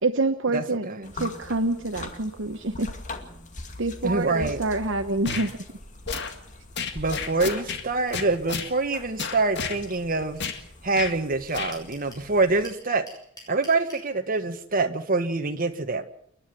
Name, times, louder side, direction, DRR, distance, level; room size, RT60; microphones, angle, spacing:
voice 1, 0.0-0.9 1.1-2.9 3.8-5.6, right 2 dB, 65° right, 7 dB, 1.1 m, -26 dB
voice 2, 0.5-1.1 4.0-4.6 6.9-10.4 10.8-13.1 13.5-16.1, right 3 dB, 45° right, 6 dB, 1.6 m, -25 dB
sound 1, 1.0-12.7, left 2 dB, 40° left, 2.2 m, -42 dB
sound 2, 5.2-5.5 6.1-6.3 6.8-7.8 8.1-8.7 9.2-9.8 10.4-10.6 10.9-11.1 11.5-11.7, left 5 dB, 55° left, 2.0 m, -31 dB
sound 3, 10.5-10.6 10.9-11.0 11.2-12.2 12.6-14.0, left 1 dB, 20° left, 7.7 m, -45 dB
29.0 x 11.0 x 8.2 m, 0.69 s
head